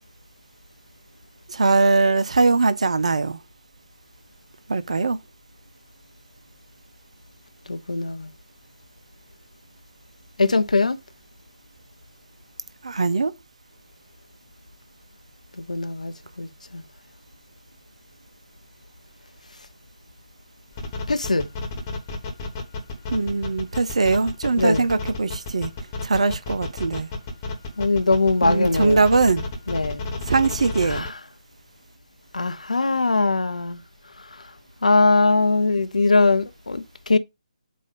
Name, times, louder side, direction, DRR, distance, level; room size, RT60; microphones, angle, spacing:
voice 1, 1.5-3.4 4.7-5.2 12.8-13.3 23.1-25.7 26.0-27.1 28.4-29.4 30.2-31.1, right 3 dB, 55° right, 0.7 m, -21 dB
voice 2, 7.7-8.3 10.4-11.0 15.6-16.8 21.1-21.5 24.6-24.9 27.8-29.0 29.7-30.1 30.9-31.1 32.3-33.8 34.8-37.2, left 3 dB, 65° left, 0.8 m, -21 dB
sound 1, 20.7-31.1, left 3 dB, 20° left, 1.3 m, -31 dB
7.6 x 2.6 x 5.0 m
figure-of-eight pair, 145°, 4 cm